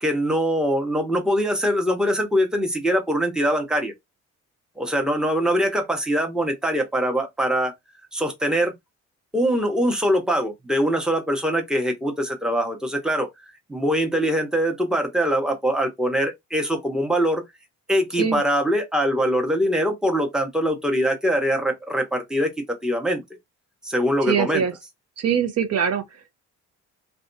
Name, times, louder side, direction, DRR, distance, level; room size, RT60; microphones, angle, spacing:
voice 1, 0.0-3.9 4.8-7.7 8.1-8.7 9.3-13.3 13.7-17.4 17.9-23.2 23.8-24.6, equal, ahead, 0.8 m, -23 dB
voice 2, 24.2-24.7 25.2-26.4, right 7 dB, 55° right, 0.6 m, -23 dB
2.6 x 2.2 x 2.6 m
cardioid pair, 90°, 30 cm